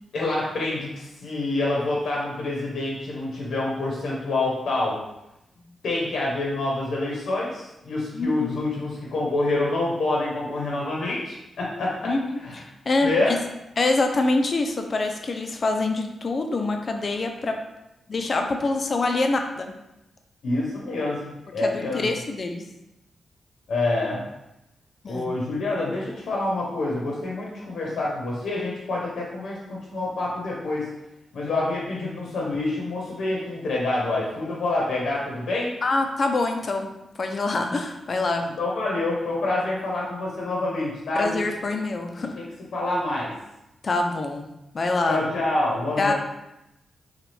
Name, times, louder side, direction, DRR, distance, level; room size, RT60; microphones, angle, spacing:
voice 1, 0.1-5.0 5.8-12.1 12.4-12.6 13.0-13.3 20.4-22.1 23.7-24.3 25.1-30.9 31.3-35.7 38.4-41.4 42.4-42.5 42.7-43.3 45.1-46.1, left 2 dB, 85° left, -3 dB, 1.0 m, -27 dB
voice 2, 8.1-8.5 12.0-13.4 13.8-17.6 18.1-19.7 21.6-22.7 25.0-25.3 35.8-38.5 41.1-42.4 43.8-45.2 46.0-46.1, left 2 dB, 40° left, 4 dB, 0.5 m, -25 dB
6.0 x 2.4 x 3.4 m, 0.90 s
wide cardioid pair, 120°, 0 cm